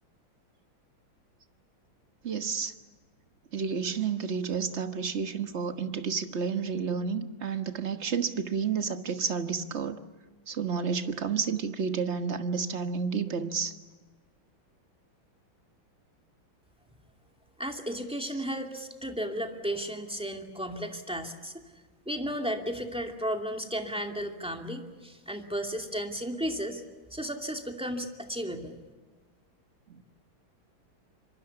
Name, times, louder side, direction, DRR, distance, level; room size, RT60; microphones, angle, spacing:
voice 1, 2.2-2.7 3.5-10.0 10.5-13.8 29.9-30.0, right 6 dB, 35° right, 9 dB, 1.4 m, -30 dB
voice 2, 17.6-21.6 22.1-26.8 27.1-28.8, equal, 5° right, 4 dB, 2.3 m, -34 dB
26.5 x 23.5 x 7.1 m, 1.3 s
omnidirectional pair, 2.3 m